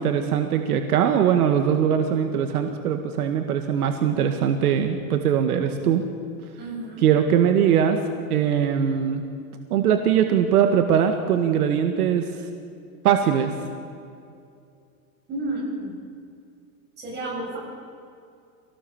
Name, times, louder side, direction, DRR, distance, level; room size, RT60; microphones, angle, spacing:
voice 1, 0.0-6.0 7.0-8.0 8.3-9.2 9.7-12.2 13.0-13.5, right 8 dB, 75° right, 5 dB, 1.9 m, -21 dB
voice 2, 6.6-7.0 15.3-16.0 17.0-17.6, right 2 dB, 20° right, -3 dB, 7.9 m, -31 dB
26.0 x 19.0 x 7.2 m, 2.5 s
supercardioid pair, 160°, 45 cm